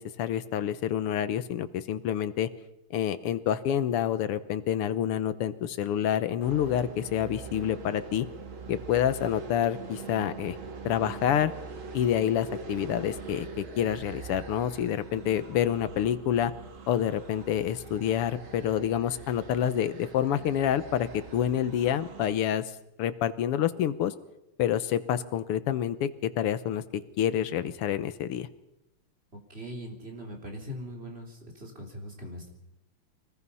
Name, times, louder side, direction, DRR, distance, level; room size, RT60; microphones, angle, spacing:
voice 1, 0.0-2.5 2.9-8.3 8.7-10.6 10.9-11.5 11.9-16.5 16.9-22.6 23.0-24.1 24.6-28.5, left 10 dB, 90° left, 13 dB, 1.9 m, -28 dB
sound 1, 6.4-22.3, right 4 dB, 65° right, 2.6 m, -43 dB
voice 2, 29.5-32.5, equal, 25° right, 1 dB, 3.7 m, -41 dB
25.0 x 20.0 x 5.6 m, 0.94 s
omnidirectional pair, 2.4 m